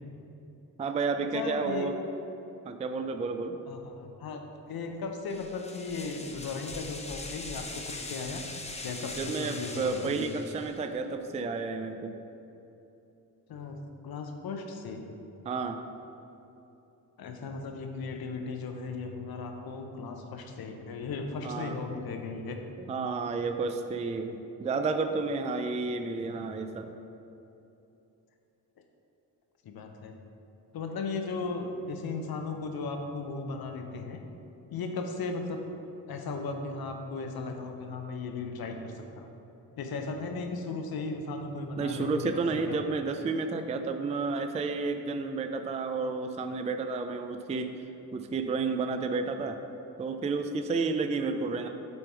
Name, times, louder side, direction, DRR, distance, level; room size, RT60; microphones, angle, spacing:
voice 1, 0.8-1.9 2.7-3.6 9.2-12.1 15.4-15.8 21.4-21.8 22.8-26.9 41.8-47.7 48.1-49.6 50.0-51.7, right 4 dB, 20° right, 7 dB, 0.3 m, -31 dB
voice 2, 1.3-1.9 3.7-4.4 4.7-8.4 8.8-10.3 13.5-13.8 14.0-15.1 17.2-22.6 29.6-30.1 30.7-34.2 34.7-35.6 36.1-39.3 39.8-42.8, left 4 dB, 65° left, 4 dB, 0.8 m, -36 dB
sound 1, 5.3-10.9, left 2 dB, 15° left, 0.6 m, -41 dB
7.0 x 3.4 x 4.6 m, 2.9 s
cardioid pair, 65°, 38 cm